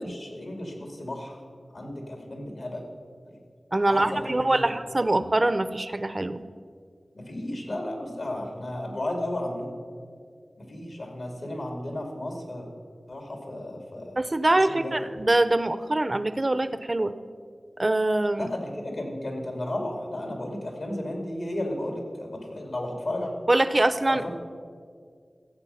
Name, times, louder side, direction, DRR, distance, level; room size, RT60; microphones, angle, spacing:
voice 1, 0.0-1.4 1.7-2.8 3.3-3.4 3.8-4.7 5.1-5.2 7.1-9.8 10.6-12.7 13.1-14.2 14.7-15.0 18.4-23.3 24.1-24.3, left 1 dB, 70° left, 2 dB, 2.5 m, -33 dB
voice 2, 3.7-6.4 14.2-17.1 17.8-18.5 23.5-24.2, right 2 dB, 40° right, 12 dB, 0.6 m, -24 dB
15.0 x 7.8 x 5.7 m, 2.1 s
wide cardioid pair, 45°, 0 cm